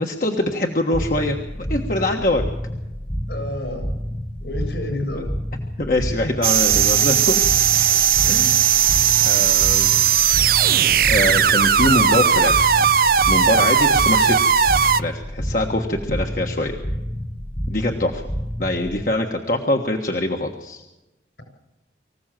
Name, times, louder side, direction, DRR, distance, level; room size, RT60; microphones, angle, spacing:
voice 1, 0.0-2.4 5.1-5.2 5.8-7.7 8.3-8.6 9.2-9.9 10.8-12.8 13.3-14.5 15.0-16.8 17.7-18.2 18.6-20.8, left 1 dB, 50° left, 3 dB, 1.5 m, -23 dB
sound 1, 0.9-19.0, equal, 10° left, 0.9 m, -29 dB
voice 2, 3.3-3.9 4.4-5.3 8.2-8.4, left 1 dB, 70° left, 6 dB, 7.7 m, -30 dB
sound 2, 6.4-15.0, right 8 dB, 50° right, 0.6 m, -17 dB
25.0 x 16.0 x 7.6 m, 1.0 s
head